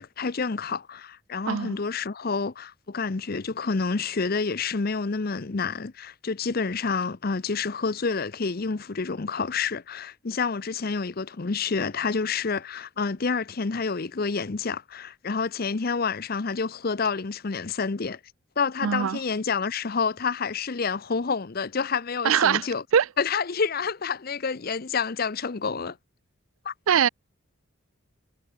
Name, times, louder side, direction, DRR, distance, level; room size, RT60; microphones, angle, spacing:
voice 1, 0.0-18.2 18.6-22.8 23.2-26.0 26.6-26.7, left 5 dB, 45° left, 0.7 m, -28 dB
voice 2, 1.5-1.8 18.8-19.2 22.2-22.7 22.9-23.1 26.9-27.1, right 8 dB, 75° right, 0.4 m, -21 dB
head